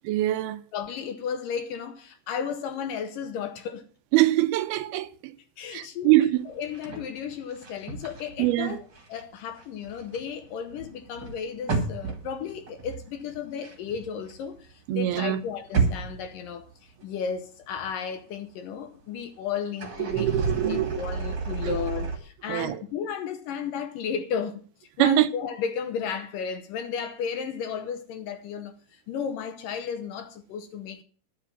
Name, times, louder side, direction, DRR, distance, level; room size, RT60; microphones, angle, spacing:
voice 1, 0.1-0.6 4.1-5.3 5.7-6.5 8.4-8.8 14.9-15.4 20.1-21.0 21.6-21.8 22.5-22.8 25.0-25.3, right 15 dB, 80° right, 2.6 m, -23 dB
voice 2, 0.7-3.8 5.6-6.1 6.5-20.3 20.7-31.0, left 7 dB, 70° left, 2.3 m, -34 dB
sound 1, 6.6-9.2 9.5-14.7 15.0-17.0 17.4-17.5 19.7-22.2, right 4 dB, 35° right, 2.2 m, -32 dB
11.0 x 7.5 x 7.3 m
omnidirectional pair, 4.5 m